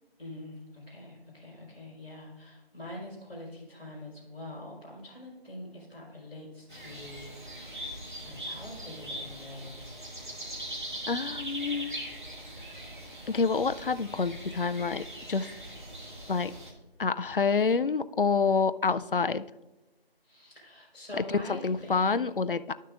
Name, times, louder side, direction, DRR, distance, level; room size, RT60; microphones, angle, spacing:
voice 1, 0.2-7.7 8.2-9.8 20.2-22.2, left 1 dB, 5° left, -16 dB, 2.5 m, -44 dB
sound 1, 6.7-16.7, right 1 dB, 50° right, 2.0 m, -41 dB
voice 2, 11.1-11.9 13.3-15.5 16.3-16.5 17.0-19.5 21.3-22.7, left 5 dB, 60° left, 13 dB, 0.4 m, -27 dB
12.5 x 6.5 x 2.5 m, 1.0 s
figure-of-eight pair, 170°, 31 cm